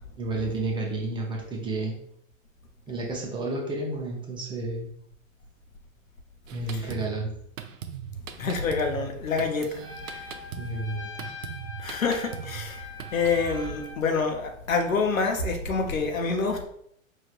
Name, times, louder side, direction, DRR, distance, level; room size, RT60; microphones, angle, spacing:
voice 1, 0.2-2.0 2.9-4.9 6.5-7.3 10.6-11.1, right 2 dB, 10° right, 0.6 m, -31 dB
Drum kit, 6.5-13.7, right 8 dB, 70° right, 0.7 m, -40 dB
voice 2, 8.4-10.3 11.8-16.7, left 4 dB, 75° left, 0.9 m, -27 dB
Trumpet, 9.8-14.1, left 3 dB, 10° left, 1.3 m, -42 dB
4.9 x 3.2 x 2.4 m
figure-of-eight pair, 110°, 41 cm